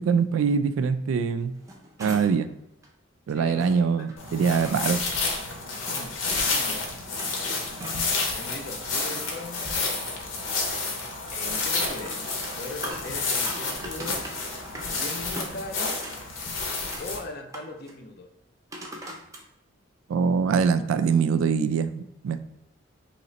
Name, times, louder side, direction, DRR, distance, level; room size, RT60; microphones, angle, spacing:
voice 1, 0.0-1.5 2.0-2.5 3.3-5.0 20.1-22.4, right 6 dB, 85° right, 11 dB, 0.3 m, -23 dB
sound 1, 1.4-2.5 2.8-2.9 3.6-4.8 5.5-6.5 6.9-8.2 8.6-9.6 11.5-14.9 15.2-16.2 16.5-17.1 17.5-17.9 18.7-19.4 20.1-20.2, right 1 dB, 15° right, 0.5 m, -41 dB
voice 2, 3.3-3.8 5.8-6.8 8.3-10.4 11.3-12.2 12.5-14.2 14.9-16.0 17.0-18.3, left 2 dB, 50° left, 4 dB, 0.5 m, -40 dB
sound 2, 4.2-17.2, left 3 dB, 85° left, 0.8 m, -30 dB
3.2 x 2.9 x 3.9 m, 0.84 s
head